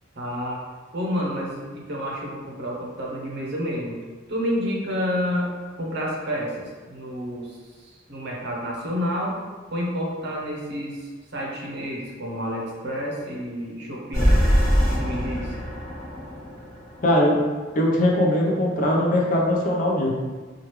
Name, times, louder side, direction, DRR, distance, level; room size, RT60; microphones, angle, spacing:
voice 1, 0.2-0.6 0.9-4.0 4.3-5.5 5.8-9.4 9.7-14.3 14.8-15.6, equal, 55° right, -3 dB, 0.7 m, -29 dB
sound 1, 14.1-17.5, equal, 15° left, 1.3 m, -22 dB
voice 2, 17.0-17.3 17.7-20.1, left 1 dB, 40° left, -2 dB, 0.6 m, -20 dB
3.0 x 2.3 x 3.1 m, 1.4 s
head